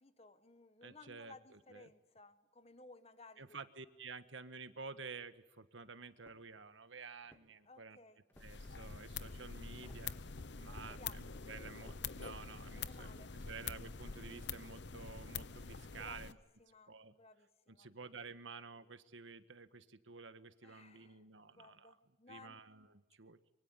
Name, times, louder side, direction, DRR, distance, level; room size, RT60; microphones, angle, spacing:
voice 1, 0.0-3.6 7.6-8.2 10.6-11.2 12.7-13.3 15.8-17.9 20.6-22.6, left 3 dB, 30° left, 11 dB, 1.4 m, -59 dB
voice 2, 0.8-1.9 3.4-8.0 8.4-10.1 10.6-16.4 16.9-17.1 17.7-21.9 22.3-23.4, right 4 dB, 80° right, 11 dB, 1.5 m, -51 dB
sound 1, 6.2-6.6 7.2-7.7 8.3-8.7 9.8-10.1 10.8-11.1 11.8-12.0, equal, 10° left, 2.7 m, -62 dB
sound 2, 8.4-16.3, left 6 dB, 65° left, 0.9 m, -46 dB
25.0 x 24.5 x 9.7 m, 1.1 s
head